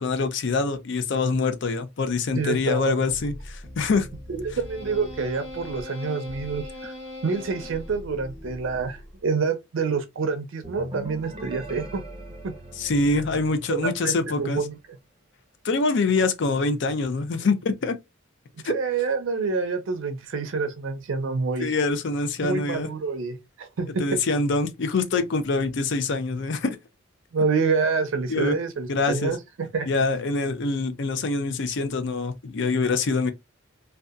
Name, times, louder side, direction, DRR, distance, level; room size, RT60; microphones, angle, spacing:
voice 1, 0.0-4.1 12.8-14.6 15.6-18.0 21.6-22.9 24.0-26.8 28.3-28.5 28.9-29.3 29.9-33.3, left 3 dB, 60° left, 0.5 m, -25 dB
voice 2, 2.4-3.0 4.3-6.9 7.2-12.0 12.4-12.5 13.7-14.8 18.6-21.7 22.4-24.2 27.3-29.9, right 4 dB, 70° right, 0.5 m, -27 dB
sound 1, 3.1-9.3, left 1 dB, 30° left, 0.7 m, -40 dB
sound 2, 10.6-14.3, right 1 dB, 25° right, 0.6 m, -40 dB
2.7 x 2.2 x 2.3 m
head